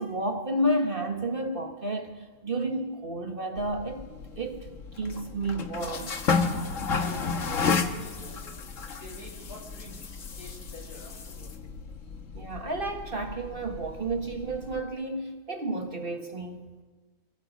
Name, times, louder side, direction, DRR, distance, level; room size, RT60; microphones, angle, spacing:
voice 1, 0.0-4.7 4.9-6.1 12.3-16.6, right 1 dB, 35° right, 1.6 m, -31 dB
sound 1, 3.6-14.8, left 5 dB, 60° left, 1.7 m, -33 dB
voice 2, 6.9-8.6 9.0-11.6, left 2 dB, 80° left, 7.7 m, -46 dB
27.5 x 23.5 x 5.3 m
omnidirectional pair, 1.6 m